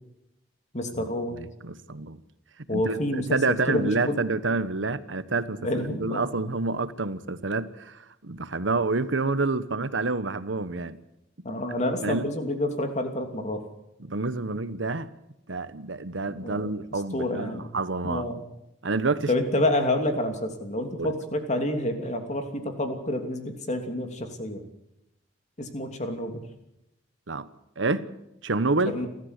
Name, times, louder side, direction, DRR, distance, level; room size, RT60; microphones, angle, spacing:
voice 1, 0.7-1.4 2.7-3.4 3.7-4.2 5.6-6.2 11.4-13.6 16.4-16.7 17.1-17.7 18.0-18.4 19.3-24.6 25.6-26.4 28.8-29.1, left 1 dB, 40° left, 2.9 m, -28 dB
voice 2, 1.4-2.2 2.7-11.0 12.0-12.3 14.0-15.1 15.5-18.3 18.8-19.3 21.0-21.1 27.3-27.5 27.8-28.1 28.4-29.0, right 3 dB, 85° right, 1.1 m, -28 dB
29.5 x 13.5 x 8.3 m
head